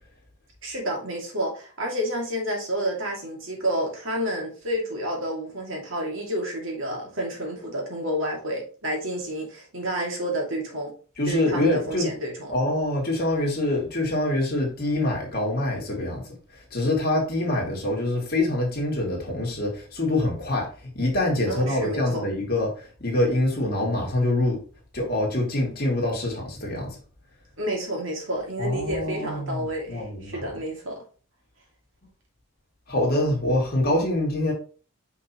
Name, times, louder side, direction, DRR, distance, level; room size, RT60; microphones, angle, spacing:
voice 1, 0.6-10.9 11.2-12.5 21.5-22.2 27.6-31.0, equal, 60° right, 2.5 m, -30 dB
voice 2, 11.2-12.1 12.5-24.6 24.9-27.0 28.6-30.5 32.9-34.5, left 1 dB, 45° left, 2.7 m, -25 dB
5.9 x 5.7 x 3.1 m
head